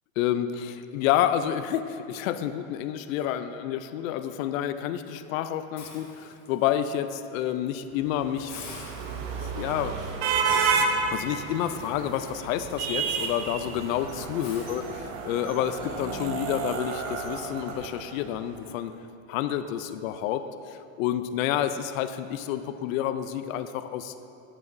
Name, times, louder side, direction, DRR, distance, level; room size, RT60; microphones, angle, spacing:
voice 1, 0.2-8.6 9.1-10.2 11.1-14.9 15.2-19.0 19.3-24.1, left 11 dB, 75° left, 10 dB, 0.6 m, -29 dB
Hiss, 5.8-6.9 7.4-7.6 7.9-8.0 8.5-15.6, left 4 dB, 40° left, 1.7 m, -49 dB
sound 1, 8.1-18.4, right 5 dB, 60° right, 0.8 m, -31 dB
9.2 x 8.1 x 2.6 m, 2.8 s
supercardioid pair, 135°, 41 cm